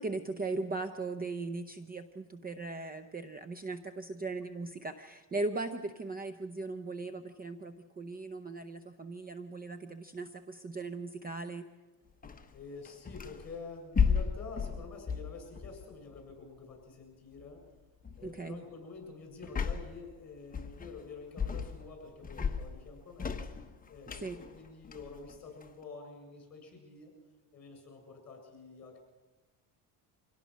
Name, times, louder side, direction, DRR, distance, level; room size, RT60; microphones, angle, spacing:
voice 1, 0.0-11.6 18.2-18.6 24.2-24.4, right 3 dB, 20° right, 9 dB, 0.8 m, -38 dB
sound 1, 12.2-13.5 13.9-16.3 17.4-17.6 18.0-18.3 19.4-20.1 20.5-21.1 21.4-21.9 22.2-25.8, left 6 dB, 20° left, 1.2 m, -34 dB
voice 2, 12.5-17.6 18.2-23.4 23.9-27.1 27.5-29.0, left 4 dB, 35° left, 3 dB, 7.6 m, -48 dB
25.5 x 17.5 x 6.3 m, 1.2 s
cardioid pair, 120°, 44 cm